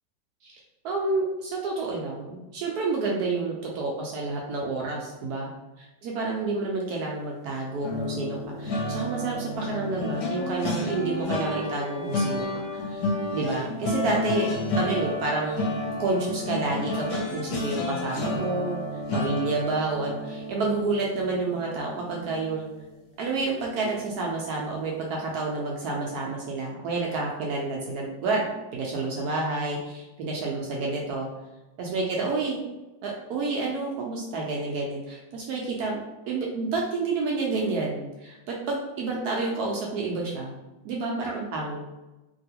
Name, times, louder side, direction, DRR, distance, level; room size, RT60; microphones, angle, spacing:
voice 1, 0.8-5.5 5.8-13.0 13.3-14.5 14.7-15.7 16.0-18.8 19.1-22.7 23.2-31.3 31.8-32.6 33.0-36.0 36.3-40.5 40.8-41.8, right 3 dB, 75° right, -2 dB, 0.9 m, -29 dB
sound 1, 7.8-23.0 23.4-23.6 23.9-24.1, left 2 dB, 70° left, 1.2 m, -31 dB
2.9 x 2.7 x 2.8 m, 1.0 s
omnidirectional pair, 2.1 m